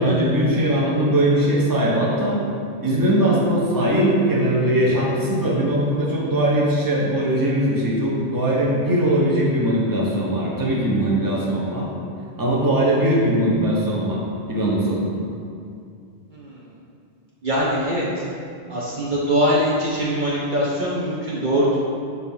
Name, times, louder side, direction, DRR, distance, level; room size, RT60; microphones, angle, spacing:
voice 1, 0.0-2.4 2.8-11.9 12.4-14.2 14.5-15.0, right 1 dB, 20° right, -5 dB, 0.9 m, -20 dB
voice 2, 16.3-16.7 17.4-18.2 18.7-21.8, equal, 50° right, -6 dB, 0.8 m, -22 dB
6.2 x 2.8 x 5.4 m, 2.4 s
omnidirectional pair, 1.1 m